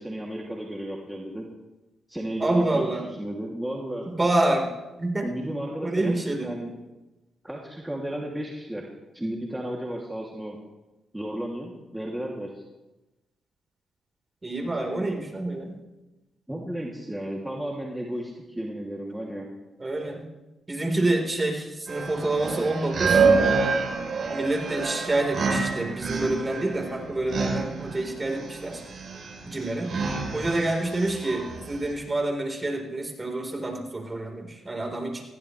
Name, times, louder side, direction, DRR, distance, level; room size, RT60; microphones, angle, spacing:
voice 1, 0.0-1.5 2.1-2.9 3.2-4.1 5.2-6.2 6.4-6.7 7.4-8.9 9.1-10.6 11.1-12.6 16.5-19.5, right 1 dB, 10° right, -2 dB, 2.7 m, -33 dB
voice 2, 2.4-3.1 4.1-4.7 5.0-5.3 5.8-6.5 14.4-15.7 19.8-20.2 20.7-23.2 24.3-28.8 29.5-29.9 30.3-35.2, right 2 dB, 30° right, 2 dB, 4.1 m, -27 dB
sound 1, 21.9-31.9, right 4 dB, 60° right, 3.7 m, -27 dB
20.0 x 16.0 x 3.3 m, 1.0 s
supercardioid pair, 55°, 0 cm